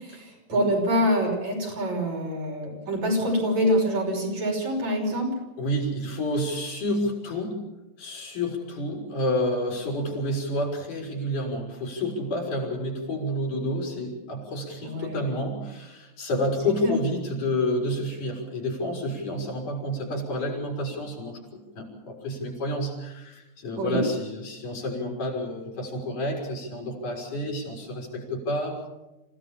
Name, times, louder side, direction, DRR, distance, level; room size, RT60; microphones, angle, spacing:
voice 1, 0.1-5.3 14.8-15.2 16.8-16.9 23.8-24.0, equal, 55° right, -1 dB, 7.0 m, -25 dB
voice 2, 5.6-7.6 8.0-28.8, left 1 dB, 70° left, -1 dB, 6.4 m, -29 dB
27.0 x 16.5 x 7.2 m, 0.99 s
omnidirectional pair, 3.8 m